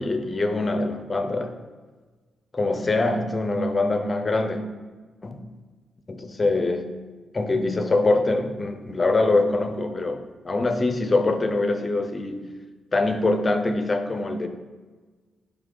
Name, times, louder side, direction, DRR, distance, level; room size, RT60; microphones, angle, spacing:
voice 1, 0.0-1.6 2.5-4.6 5.2-5.4 6.1-6.9 7.3-12.5 12.9-14.5, left 2 dB, 25° left, 7 dB, 0.6 m, -24 dB
5.9 x 3.5 x 5.3 m, 1.4 s
cardioid pair, 115°, 0 cm